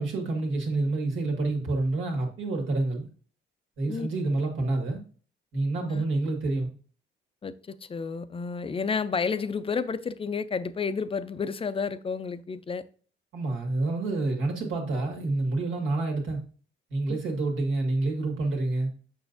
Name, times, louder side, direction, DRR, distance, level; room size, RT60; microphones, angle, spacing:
voice 1, 0.0-3.1 3.8-5.0 5.5-6.7 13.3-16.4 16.9-18.9, right 2 dB, 80° right, 2.0 m, -28 dB
voice 2, 7.4-12.8 17.1-17.2, left 5 dB, 30° left, 0.5 m, -31 dB
7.1 x 5.7 x 2.6 m
cardioid pair, 90°, 20 cm